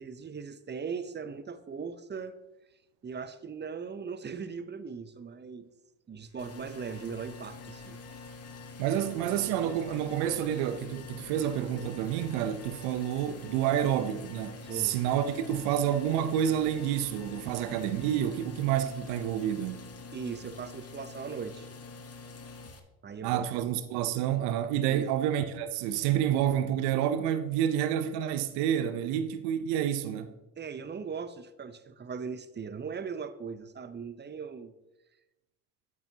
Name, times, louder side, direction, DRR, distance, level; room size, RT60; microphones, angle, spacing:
voice 1, 0.0-2.3 3.0-5.7 6.1-8.0 14.6-15.0 20.1-21.7 23.0-23.5 24.9-25.1 30.6-34.7, right 6 dB, 25° right, 0.7 m, -39 dB
Alarm, 6.2-18.7, left 6 dB, 80° left, 1.1 m, -55 dB
sound 1, 6.4-22.8, left 3 dB, 40° left, 1.1 m, -46 dB
voice 2, 8.8-19.9 23.2-30.3, right 10 dB, 80° right, 0.7 m, -29 dB
8.6 x 8.4 x 2.8 m
hypercardioid pair, 55°, 39 cm